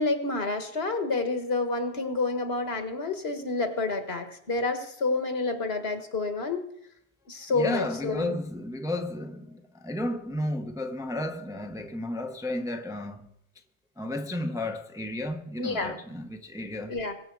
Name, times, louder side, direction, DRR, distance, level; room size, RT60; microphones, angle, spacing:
voice 1, 0.0-6.6 7.3-8.4 15.6-16.0 16.9-17.1, left 3 dB, 65° left, 1.7 m, -29 dB
voice 2, 7.5-13.3 14.0-17.0, left 1 dB, 5° right, 0.7 m, -33 dB
21.5 x 7.4 x 4.7 m
omnidirectional pair, 1.1 m